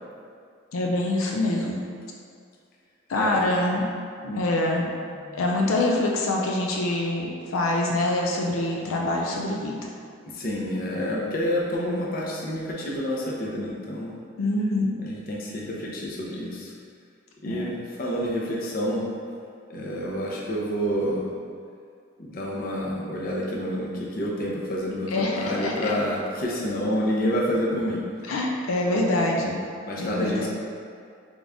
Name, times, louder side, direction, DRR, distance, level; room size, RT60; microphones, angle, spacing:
voice 1, 0.7-1.8 3.1-3.8 4.2-4.9 5.3-9.7 14.4-15.0 17.4-17.7 25.1-25.9 28.2-29.6 30.0-30.5, left 2 dB, 90° left, 0 dB, 0.5 m, -25 dB
voice 2, 3.1-3.5 5.2-5.4 10.2-14.1 15.0-16.7 17.4-19.1 19.7-21.3 22.2-28.0 28.9-29.0 29.8-30.5, equal, 45° left, -3 dB, 0.6 m, -28 dB
3.9 x 3.5 x 3.5 m, 2.3 s
head